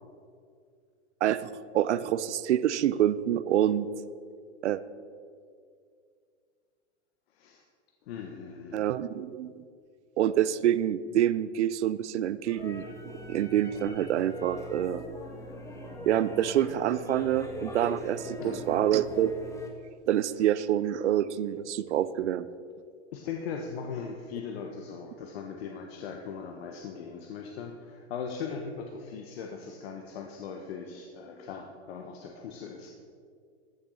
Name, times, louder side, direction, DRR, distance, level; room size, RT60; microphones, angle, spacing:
voice 1, 1.2-3.9 4.6-4.8 8.7-9.6 10.2-12.8 13.3-15.0 16.1-19.3 20.1-22.5, right 11 dB, 80° right, 16 dB, 0.6 m, -27 dB
voice 2, 7.3-7.6 8.1-8.9 18.4-19.0 23.1-32.9, left 6 dB, 60° left, 3 dB, 1.3 m, -39 dB
sound 1, 12.5-19.7, left 1 dB, 10° left, 1.6 m, -41 dB
14.5 x 6.8 x 6.4 m, 2.2 s
hypercardioid pair, 120°, 34 cm